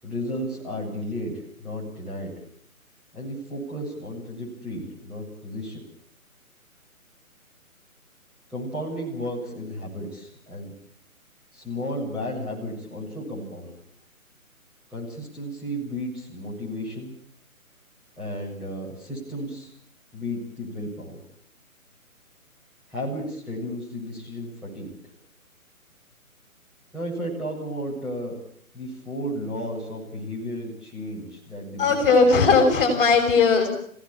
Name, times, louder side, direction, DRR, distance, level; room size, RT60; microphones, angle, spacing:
voice 1, 0.0-2.3 3.1-5.8 8.5-10.7 11.5-13.7 14.9-17.1 18.2-19.7 20.1-21.2 22.9-24.9 26.9-28.4 28.7-32.0 32.2-32.4, equal, ahead, -7 dB, 7.5 m, -33 dB
voice 2, 31.8-33.7, left 4 dB, 40° left, 3 dB, 6.1 m, -18 dB
28.5 x 17.0 x 8.7 m, 0.67 s
figure-of-eight pair, 150°, 43 cm